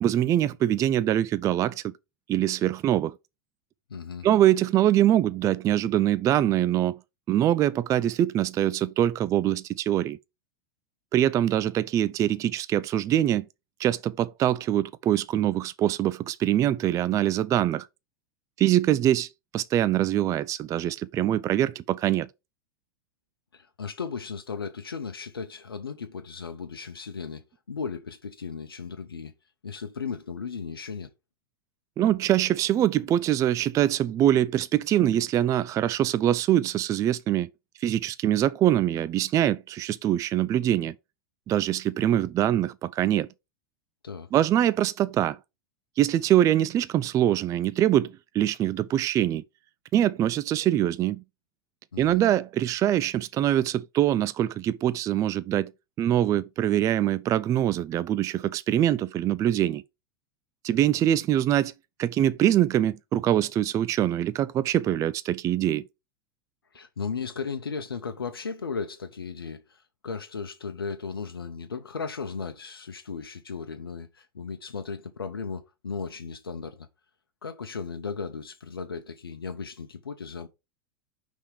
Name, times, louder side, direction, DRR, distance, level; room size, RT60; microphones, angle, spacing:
voice 1, 0.0-1.9 2.3-3.2 4.2-7.0 7.3-10.2 11.1-13.4 13.8-17.9 18.6-22.3 32.0-37.5 37.8-40.9 41.5-43.3 44.3-45.4 46.0-49.4 49.9-51.2 52.0-55.7 56.0-59.8 60.6-61.7 62.0-65.8, right 12 dB, 25° right, 0.3 m, -24 dB
voice 2, 3.9-4.3 23.5-29.3 29.6-31.1 44.0-44.3 51.9-52.2 66.7-76.9 77.4-80.5, left 5 dB, 90° left, 0.7 m, -36 dB
5.6 x 3.6 x 4.8 m
hypercardioid pair, 100°, 12 cm